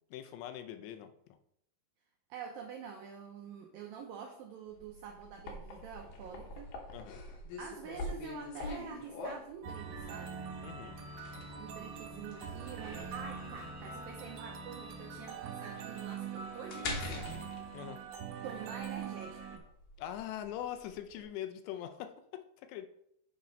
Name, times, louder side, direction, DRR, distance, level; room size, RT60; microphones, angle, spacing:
voice 1, 0.1-1.1 6.9-7.2 10.6-11.0 17.7-18.0 20.0-22.9, left 11 dB, 80° left, 9 dB, 2.7 m, -42 dB
voice 2, 2.3-6.8 7.6-10.4 11.6-17.5 18.4-19.6, right 7 dB, 90° right, 2 dB, 2.0 m, -46 dB
sound 1, 4.7-21.2, left 2 dB, 65° left, 2.3 m, -45 dB
sound 2, 9.6-19.6, right 6 dB, 70° right, 2.9 m, -43 dB
Bowed string instrument, 12.7-17.4, left 2 dB, 15° right, 0.6 m, -57 dB
8.2 x 4.3 x 5.1 m, 0.72 s
omnidirectional pair, 5.0 m